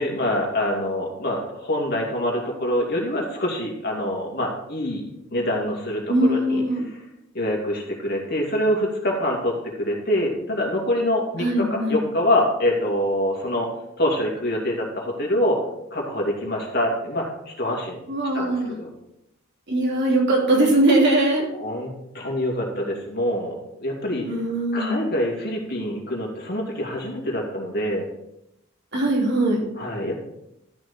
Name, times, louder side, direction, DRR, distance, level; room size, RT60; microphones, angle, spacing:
voice 1, 0.0-5.0 5.3-7.0 7.3-13.7 14.0-15.6 15.9-18.0 18.3-18.9 21.5-21.9 22.1-24.2 24.7-28.0 29.8-30.1, left 1 dB, 50° left, 0 dB, 2.6 m, -25 dB
voice 2, 6.1-6.9 11.4-12.0 18.1-18.7 19.7-21.5 24.3-25.0 28.9-29.6, right 1 dB, 55° right, -3 dB, 3.1 m, -20 dB
13.0 x 6.2 x 4.4 m, 0.83 s
head